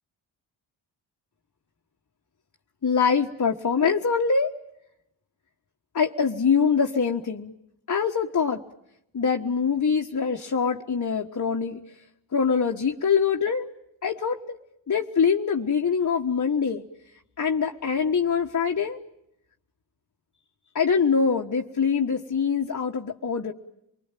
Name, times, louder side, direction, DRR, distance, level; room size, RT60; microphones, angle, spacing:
voice 1, 2.8-4.5 5.9-7.5 7.9-8.6 9.1-11.8 12.3-13.7 14.0-14.6 14.9-16.8 17.4-19.0 20.7-23.5, left 6 dB, 40° left, 2 dB, 1.5 m, -24 dB
26.5 x 20.5 x 9.2 m, 0.81 s
supercardioid pair, 50°, 46 cm